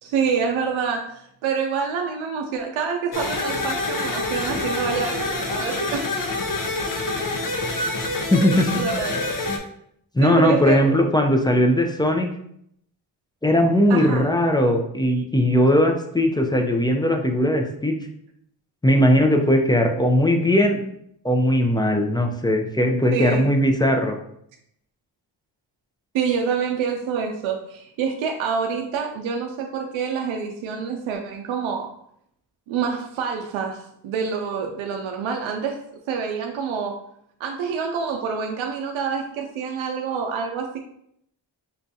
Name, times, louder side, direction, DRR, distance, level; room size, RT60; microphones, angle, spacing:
voice 1, 0.0-6.1 8.8-9.3 10.2-10.9 13.9-14.3 23.1-23.5 26.1-31.9 32.7-37.0 37.4-40.8, right 6 dB, 85° right, 2 dB, 0.5 m, -27 dB
sound 1, 3.1-9.6, left 2 dB, 45° left, 0.7 m, -26 dB
voice 2, 8.3-8.8 10.1-12.3 13.4-17.9 18.8-20.8 21.2-24.2, equal, 10° left, 3 dB, 0.5 m, -19 dB
5.2 x 2.2 x 2.7 m, 0.72 s
cardioid pair, 60°, 46 cm